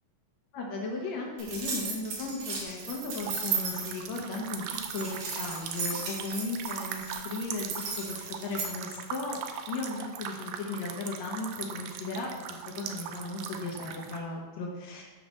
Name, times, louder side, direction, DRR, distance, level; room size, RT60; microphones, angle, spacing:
voice 1, 0.5-4.6 4.9-9.4 9.7-12.3 12.7-15.0, left 3 dB, 75° left, -2 dB, 1.6 m, -36 dB
sound 1, 1.4-8.7, right 5 dB, 65° right, 3.5 m, -35 dB
sound 2, 3.2-14.2, right 8 dB, 90° right, 2.0 m, -40 dB
11.5 x 6.4 x 3.2 m, 1.3 s
omnidirectional pair, 4.9 m